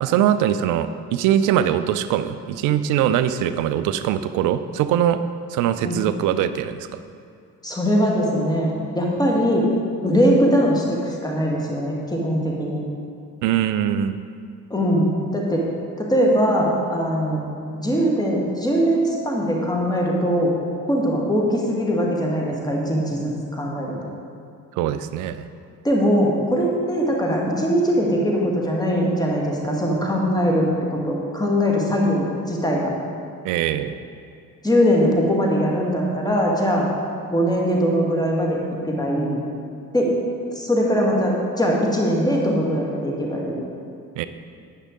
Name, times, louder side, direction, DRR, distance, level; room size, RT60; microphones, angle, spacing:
voice 1, 0.0-5.2 5.5-7.0 13.4-14.2 24.8-25.5 33.4-34.0 44.2-44.3, right 10 dB, 45° right, 12 dB, 0.5 m, -22 dB
voice 2, 7.6-9.7 10.0-12.8 14.7-15.7 16.0-17.4 17.7-20.5 20.9-24.1 25.8-32.9 34.6-36.9 37.3-39.4 39.9-40.1 40.6-43.6, equal, 10° left, -2 dB, 1.7 m, -21 dB
9.7 x 6.5 x 3.8 m, 2.5 s
figure-of-eight pair, 50°, 47 cm